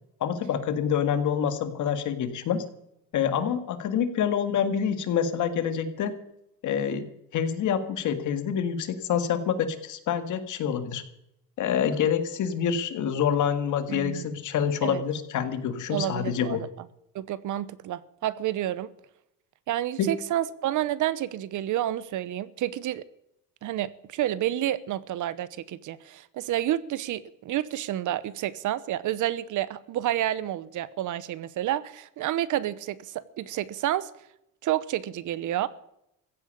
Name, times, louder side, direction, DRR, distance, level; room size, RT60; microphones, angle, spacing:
voice 1, 0.2-2.6 3.1-6.1 6.6-7.1 7.3-11.0 11.6-16.6 20.0-20.1, left 8 dB, 60° left, 9 dB, 2.0 m, -27 dB
voice 2, 13.9-14.3 14.8-15.0 15.9-16.7 17.1-18.9 19.7-23.1 23.6-34.1 34.6-35.7, right 12 dB, 60° right, 18 dB, 0.9 m, -29 dB
15.5 x 9.0 x 8.5 m, 0.80 s
cardioid pair, 140°, 35 cm